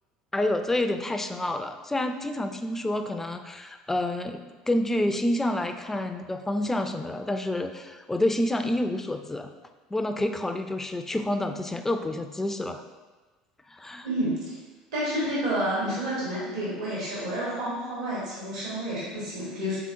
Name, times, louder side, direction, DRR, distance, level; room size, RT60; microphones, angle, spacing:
voice 1, 0.3-9.5 9.9-12.8 13.7-14.1, left 1 dB, 10° left, 7 dB, 0.4 m, -28 dB
voice 2, 14.0-14.6 14.9-19.8, right 1 dB, 80° right, -7 dB, 1.3 m, -29 dB
4.8 x 3.7 x 2.5 m, 1.3 s
hypercardioid pair, 75°, 3 cm